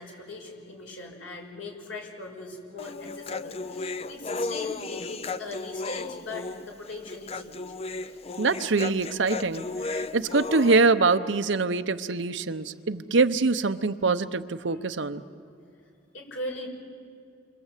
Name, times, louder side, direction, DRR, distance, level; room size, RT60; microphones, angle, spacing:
voice 1, 0.0-7.6 8.0-8.1 14.7-14.8 16.1-16.7, left 2 dB, 90° left, 1 dB, 5.9 m, -39 dB
Human voice, 2.8-10.8, left 3 dB, 30° left, 0.6 m, -34 dB
voice 2, 8.4-15.2, right 3 dB, 70° right, 11 dB, 0.8 m, -24 dB
28.5 x 24.5 x 8.3 m, 2.5 s
head